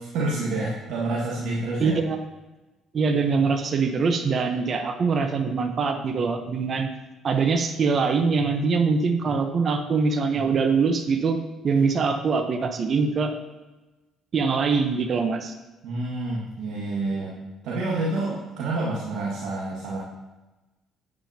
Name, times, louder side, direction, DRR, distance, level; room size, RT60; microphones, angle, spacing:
voice 1, 0.0-2.0 10.3-10.4 15.8-17.3 17.6-20.0, right 2 dB, 75° right, -5 dB, 1.8 m, -28 dB
voice 2, 1.8-2.2 2.9-6.9 7.2-11.4 11.6-13.4 14.3-15.5, right 4 dB, 45° right, 6 dB, 1.0 m, -23 dB
9.4 x 9.1 x 2.9 m, 1.1 s
supercardioid pair, 80°, 0 cm